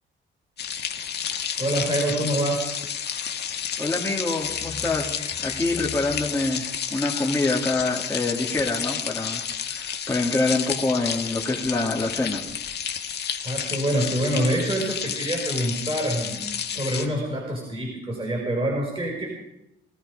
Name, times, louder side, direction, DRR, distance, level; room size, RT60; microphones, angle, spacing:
sound 1, 0.6-17.1, left 8 dB, 55° left, 1.6 m, -31 dB
voice 1, 1.6-2.8 13.4-16.4 16.7-19.3, right 1 dB, 25° right, -1 dB, 5.3 m, -26 dB
voice 2, 3.8-12.4, left 2 dB, 10° left, -5 dB, 2.5 m, -26 dB
sound 2, 4.4-6.7, left 4 dB, 35° left, 3.1 m, -40 dB
20.5 x 14.0 x 5.0 m, 0.88 s
cardioid pair, 90°, 20 cm